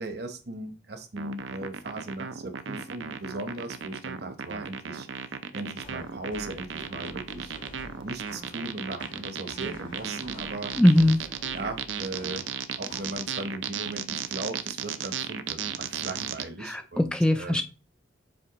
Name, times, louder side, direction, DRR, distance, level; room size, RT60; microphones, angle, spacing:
voice 1, 0.0-5.1 5.5-7.5 8.0-10.7 11.5-12.5 12.8-17.6, right 2 dB, 55° right, 7 dB, 0.9 m, -38 dB
sound 1, 1.2-16.4, right 7 dB, 80° right, 0.5 m, -35 dB
sound 2, 5.8-13.6, left 1 dB, 90° left, 2.2 m, -48 dB
voice 2, 10.7-11.2 16.6-17.6, left 1 dB, 5° left, 7 dB, 0.3 m, -21 dB
7.6 x 4.3 x 3.0 m, 0.33 s
head